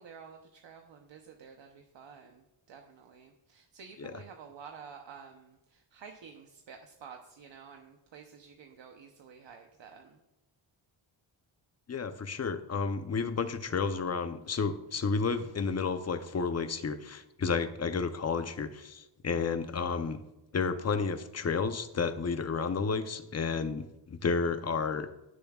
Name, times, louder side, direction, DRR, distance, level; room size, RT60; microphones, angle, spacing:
voice 1, 0.0-10.2, right 6 dB, 65° right, 3 dB, 0.9 m, -51 dB
voice 2, 11.9-20.2 20.5-25.1, left 5 dB, 35° left, 10 dB, 0.7 m, -31 dB
15.5 x 6.9 x 2.4 m, 0.97 s
wide cardioid pair, 135°, 48 cm